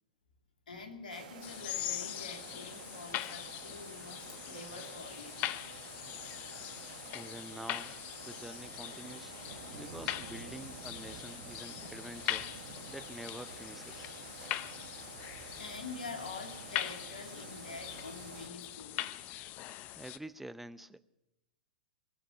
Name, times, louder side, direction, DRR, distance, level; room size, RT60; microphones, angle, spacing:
voice 1, 0.7-5.4 15.6-19.1, left 4 dB, 80° left, 5 dB, 2.5 m, -46 dB
sound 1, 1.1-18.5, right 7 dB, 65° right, 1.5 m, -50 dB
sound 2, 1.4-20.2, left 14 dB, 40° left, 0.7 m, -42 dB
voice 2, 7.1-7.9 8.2-9.3 9.7-12.5 12.9-14.2 20.0-21.0, right 1 dB, 5° right, 14 dB, 0.6 m, -47 dB
19.5 x 7.6 x 8.4 m, 0.92 s
hypercardioid pair, 110°, 4 cm